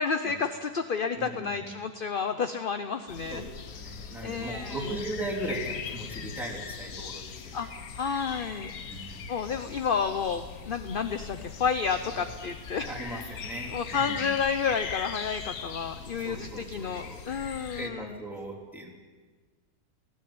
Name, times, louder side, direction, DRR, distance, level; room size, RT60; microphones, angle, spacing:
voice 1, 0.0-3.4 4.2-5.0 7.5-7.7 7.9-8.7 9.0-13.3 13.7-18.2, left 6 dB, 45° left, 9 dB, 0.7 m, -31 dB
voice 2, 1.1-1.6 3.3-7.7 8.9-9.3 12.1-12.2 12.8-14.3 16.2-17.2 17.7-18.9, right 1 dB, ahead, -1 dB, 3.4 m, -38 dB
sound 1, 3.1-17.9, left 6 dB, 65° left, 1.5 m, -40 dB
19.5 x 15.5 x 8.7 m, 1.4 s
omnidirectional pair, 1.7 m